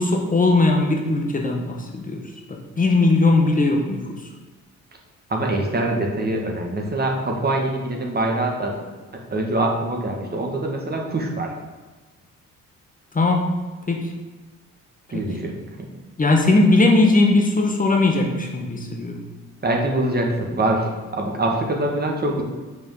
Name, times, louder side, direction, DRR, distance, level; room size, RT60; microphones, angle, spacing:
voice 1, 0.0-2.2 2.5-4.0 13.1-13.6 13.9-14.1 15.1-15.3 16.2-19.2, left 2 dB, 25° left, 2 dB, 1.3 m, -19 dB
voice 2, 5.3-8.8 9.3-11.5 15.1-15.5 19.6-22.4, right 1 dB, 30° right, 1 dB, 1.9 m, -24 dB
6.6 x 5.5 x 7.2 m, 1.3 s
cardioid pair, 90°, 30 cm